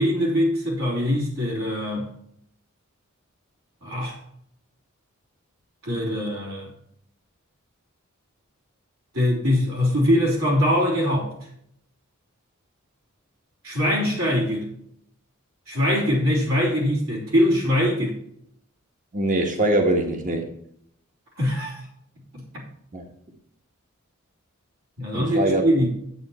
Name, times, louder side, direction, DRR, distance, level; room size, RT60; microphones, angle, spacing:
voice 1, 0.0-2.1 3.8-4.2 5.8-6.7 9.1-11.3 13.6-14.7 15.7-18.2 21.4-21.8 22.3-22.4 25.0-25.9, equal, 70° right, -2 dB, 3.4 m, -22 dB
voice 2, 19.1-20.5 22.9-23.0 25.1-25.6, right 1 dB, 35° right, 3 dB, 1.4 m, -23 dB
9.1 x 8.0 x 4.2 m, 0.69 s
head